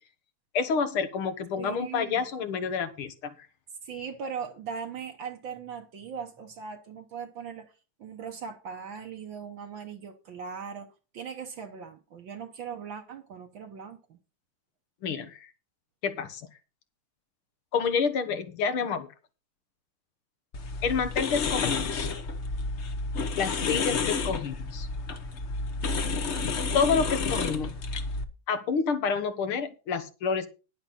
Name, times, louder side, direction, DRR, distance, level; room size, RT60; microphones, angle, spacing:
voice 1, 0.5-3.5 15.0-15.5 16.0-16.5 17.7-19.1 20.8-22.1 23.4-24.9 26.7-27.7 28.5-30.5, left 5 dB, 80° left, 2.3 m, -28 dB
voice 2, 1.6-2.3 3.8-7.7 8.0-14.2, right 6 dB, 65° right, 1.7 m, -39 dB
sound 1, 20.5-28.2, left 4 dB, 45° left, 1.0 m, -30 dB
10.5 x 10.0 x 4.2 m
omnidirectional pair, 2.3 m